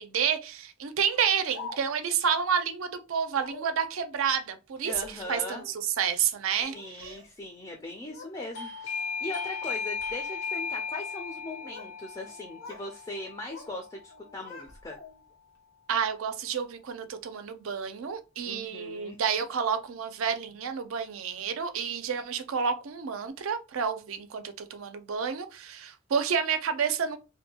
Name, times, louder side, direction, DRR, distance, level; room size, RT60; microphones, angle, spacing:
voice 1, 0.0-7.2 15.9-27.2, right 7 dB, 80° right, 0.4 m, -30 dB
Speech, 1.1-2.2 3.3-3.8 4.8-5.8 6.5-7.3 7.6-8.4 8.7-9.1 9.8-10.1 11.2-12.0 12.2-12.9 13.2-13.8 14.1-15.3, left 3 dB, 85° left, 0.9 m, -47 dB
voice 2, 4.8-5.7 6.7-15.0 18.5-19.2, left 2 dB, 20° left, 0.4 m, -40 dB
Doorbell, 8.5-15.0, left 5 dB, 60° left, 0.6 m, -37 dB
2.6 x 2.2 x 2.7 m
head